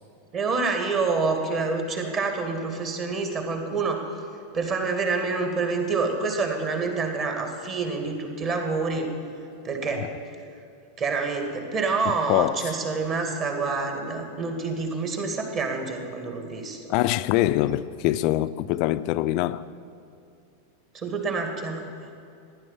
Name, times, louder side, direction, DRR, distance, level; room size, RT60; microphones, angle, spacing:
voice 1, 0.3-4.0 4.5-9.1 9.6-10.0 11.0-16.8 20.9-21.9, right 4 dB, 30° right, 2.5 m, -27 dB
voice 2, 12.1-12.6 16.9-19.6, left 15 dB, 45° left, 0.5 m, -24 dB
15.5 x 11.0 x 7.4 m
figure-of-eight pair, 90°, 0 cm